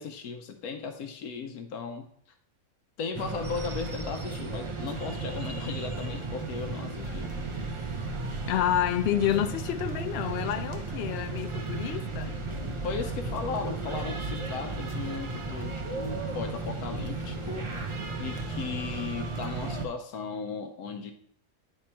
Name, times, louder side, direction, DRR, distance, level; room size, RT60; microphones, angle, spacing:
voice 1, 0.0-2.1 3.0-7.5 12.8-17.7 18.2-21.1, left 5 dB, 90° left, 1.1 m, -36 dB
sound 1, 3.1-19.9, right 3 dB, 45° right, 0.4 m, -35 dB
sound 2, 7.1-19.5, right 6 dB, 75° right, 1.1 m, -45 dB
voice 2, 8.5-12.3, left 11 dB, 70° left, 0.6 m, -29 dB
9.7 x 3.5 x 4.3 m
omnidirectional pair, 1.5 m